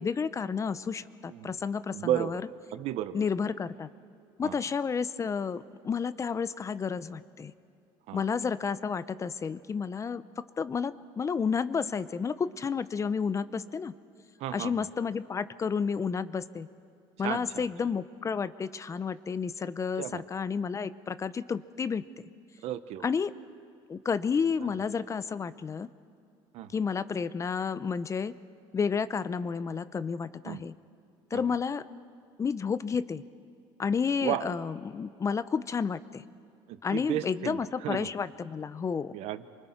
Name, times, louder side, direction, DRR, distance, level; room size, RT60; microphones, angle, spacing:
voice 1, 0.0-2.4 3.1-3.9 4.4-7.5 8.1-10.2 10.6-13.9 14.5-16.7 17.2-22.0 23.0-23.3 23.9-25.9 26.7-28.3 28.7-30.7 31.3-31.8 32.4-33.2 33.8-36.2 36.8-39.1, left 6 dB, 25° left, 15 dB, 0.6 m, -31 dB
voice 2, 1.9-2.4 2.7-3.2 4.4-4.6 8.1-8.3 14.4-14.9 17.2-17.9 20.0-20.2 22.6-23.0 24.6-24.8 26.5-26.8 30.4-30.6 31.3-31.6 34.2-34.5 36.7-38.1 39.1-39.5, right 12 dB, 65° right, 12 dB, 1.0 m, -34 dB
28.5 x 24.0 x 4.6 m, 2.6 s
cardioid pair, 110°, 12 cm